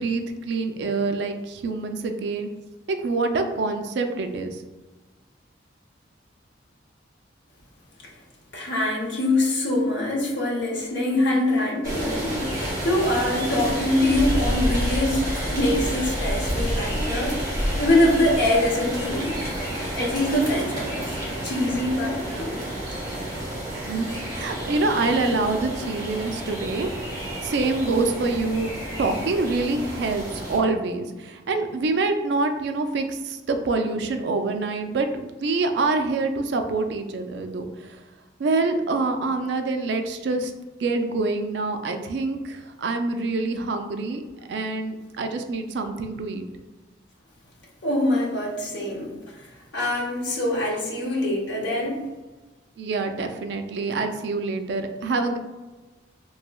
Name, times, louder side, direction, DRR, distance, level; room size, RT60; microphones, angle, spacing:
voice 1, 0.0-2.5 2.9-4.6 23.7-26.9 27.4-28.7 29.0-38.0 38.4-40.5 40.8-44.2 44.5-46.4 52.8-55.4, right 3 dB, 60° right, 6 dB, 0.3 m, -26 dB
voice 2, 8.5-17.4 17.8-19.4 19.9-21.2 21.4-22.6 47.8-52.0, left 1 dB, 70° left, -2 dB, 0.8 m, -24 dB
sound 1, 11.8-30.6, equal, 20° right, 0.9 m, -29 dB
3.1 x 2.9 x 2.2 m, 1.2 s
head